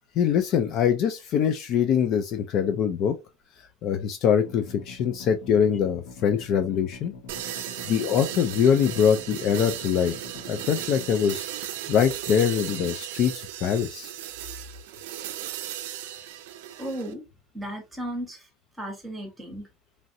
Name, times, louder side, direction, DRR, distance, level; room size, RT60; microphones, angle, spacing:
voice 1, 0.2-3.2 3.8-7.1 7.4-7.6 7.9-10.1 10.5-11.5 11.9-13.3 13.6-14.1, left 8 dB, 40° left, 0.3 m, -23 dB
sound 1, 4.4-11.2, left 3 dB, 80° left, 0.9 m, -44 dB
sound 2, 7.3-17.1, right 12 dB, 80° right, 0.4 m, -36 dB
voice 2, 16.8-17.2 17.5-18.4 18.8-19.7, right 1 dB, 5° right, 1.1 m, -34 dB
3.0 x 2.5 x 2.6 m
supercardioid pair, 155°, 0 cm